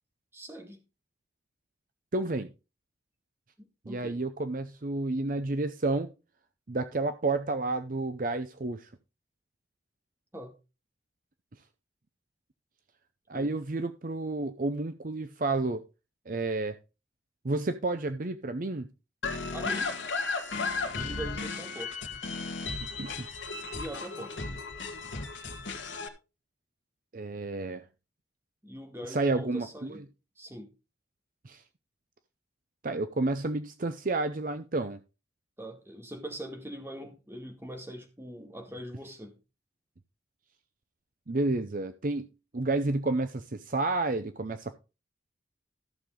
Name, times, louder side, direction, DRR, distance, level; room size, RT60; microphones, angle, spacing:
voice 1, 0.3-0.8 3.6-4.2 10.3-10.5 13.3-13.5 19.5-19.9 21.0-21.9 23.7-24.3 28.6-30.0 30.4-30.7 35.6-39.4, right 1 dB, 15° right, 2.0 m, -42 dB
voice 2, 2.1-2.5 3.9-6.1 6.7-8.9 13.3-15.8 16.3-16.8 17.4-18.9 23.0-23.3 27.1-27.8 29.1-30.0 31.4-31.6 32.8-35.0 41.3-42.3 42.5-44.8, right 2 dB, 45° right, 0.6 m, -30 dB
sound 1, 19.2-26.1, left 4 dB, 80° left, 1.7 m, -35 dB
14.0 x 6.7 x 3.8 m
head